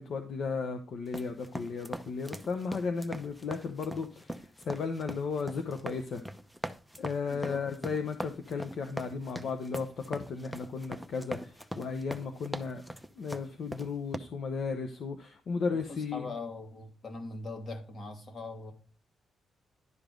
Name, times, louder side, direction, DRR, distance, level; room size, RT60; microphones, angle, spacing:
voice 1, 0.0-6.2 7.0-12.8 13.2-16.2, left 5 dB, 65° left, 6 dB, 0.9 m, -35 dB
sound 1, 1.1-14.2, equal, ahead, 0.8 m, -41 dB
voice 2, 7.3-7.6 15.9-18.7, left 3 dB, 50° left, 4 dB, 2.5 m, -41 dB
11.0 x 5.1 x 3.8 m, 0.41 s
cardioid pair, 85°, 0 cm